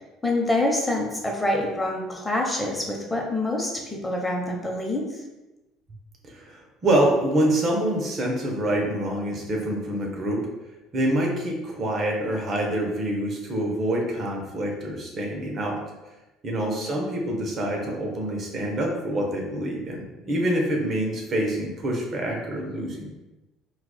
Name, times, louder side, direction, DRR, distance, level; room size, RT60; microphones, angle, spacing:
voice 1, 0.2-5.0 16.6-17.0, left 1 dB, 10° left, 0 dB, 0.9 m, -26 dB
voice 2, 6.3-10.4 10.9-15.8 16.4-23.1, right 1 dB, 45° right, 0 dB, 0.9 m, -26 dB
4.5 x 2.4 x 2.2 m, 1.0 s
hypercardioid pair, 65°, 0 cm